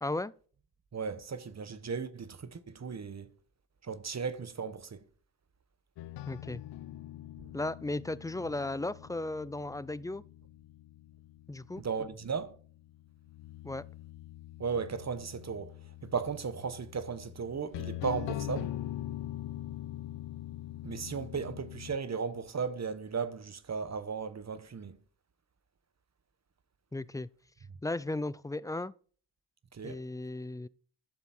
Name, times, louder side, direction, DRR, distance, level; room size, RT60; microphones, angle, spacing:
voice 1, 0.0-0.3 6.3-6.6 7.5-10.2 11.5-11.8 13.6-13.8 26.9-27.3 27.8-28.9 29.8-30.7, left 2 dB, 10° left, 0.3 m, -35 dB
voice 2, 0.9-3.3 3.8-5.0 11.8-12.5 14.6-15.7 16.0-18.7 20.8-25.0 29.7-30.0, right 5 dB, 40° right, 1.2 m, -36 dB
sound 1, 6.0-22.0, left 13 dB, 85° left, 0.6 m, -43 dB
11.5 x 6.9 x 4.3 m
cardioid pair, 70°, 42 cm